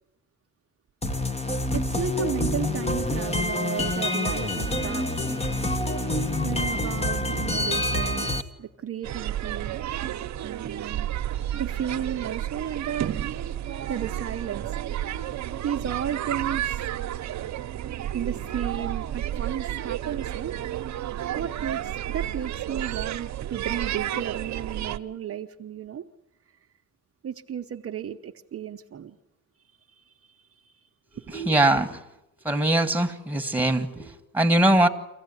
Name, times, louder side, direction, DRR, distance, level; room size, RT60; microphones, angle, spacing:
sound 1, 1.0-8.4, left 1 dB, 20° left, 1.7 m, -27 dB
voice 1, 1.7-5.1 6.4-8.3 8.6-9.8 10.4-11.1 11.5-13.2 13.9-14.7 15.6-16.8 18.1-20.6 21.2-26.1 27.2-29.2 29.9-30.9 31.1-31.4, right 9 dB, 50° right, 4 dB, 1.0 m, -33 dB
sound 2, 9.0-25.0, right 11 dB, 65° right, 1.1 m, -31 dB
voice 2, 31.3-32.0 32.5-34.9, right 1 dB, 5° right, 6 dB, 1.9 m, -22 dB
25.0 x 16.0 x 9.8 m, 0.91 s
cardioid pair, 90°, 30 cm